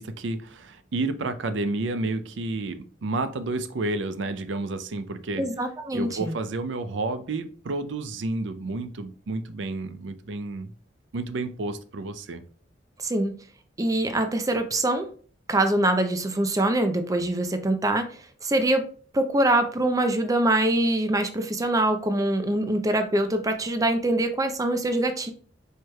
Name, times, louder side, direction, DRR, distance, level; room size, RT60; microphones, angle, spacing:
voice 1, 0.0-5.4 5.9-10.7 11.1-12.4, right 2 dB, 75° right, 11 dB, 0.5 m, -30 dB
voice 2, 5.4-6.3 13.0-13.3 13.8-15.1 15.5-18.1 18.4-18.8 19.1-25.3, right 1 dB, 20° right, 8 dB, 0.5 m, -24 dB
4.6 x 4.6 x 2.3 m, 0.44 s
head